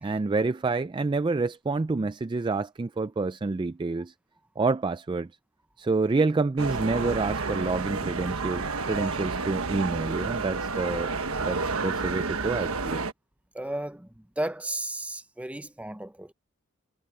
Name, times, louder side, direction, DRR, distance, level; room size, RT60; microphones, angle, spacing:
voice 1, 0.0-4.1 4.6-5.3 5.8-11.1 11.4-13.0, right 3 dB, 20° right, 0.3 m, -28 dB
sound 1, 6.6-13.1, right 4 dB, 80° right, 1.3 m, -30 dB
voice 2, 13.5-16.3, right 1 dB, 5° right, 0.7 m, -34 dB
head